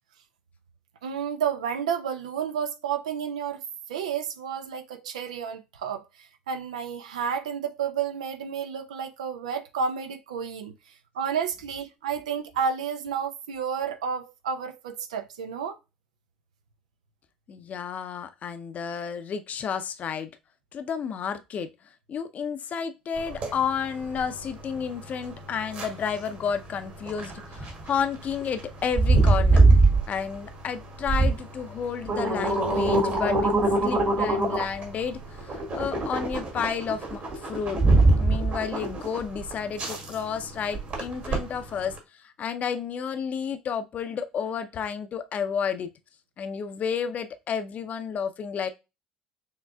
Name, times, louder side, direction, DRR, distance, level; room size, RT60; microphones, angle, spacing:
voice 1, 1.0-3.6 3.9-10.7 11.1-15.8, right 7 dB, 70° right, 0.6 m, -31 dB
voice 2, 17.5-20.3 20.7-21.7 22.1-29.7 30.1-33.5 33.8-37.8 38.2-41.9 42.4-45.9 46.4-48.7, left 7 dB, 40° left, 0.6 m, -31 dB
sound 1, 23.2-42.0, right 2 dB, 45° right, 2.0 m, -24 dB
6.5 x 3.1 x 2.3 m
figure-of-eight pair, 60°, 4 cm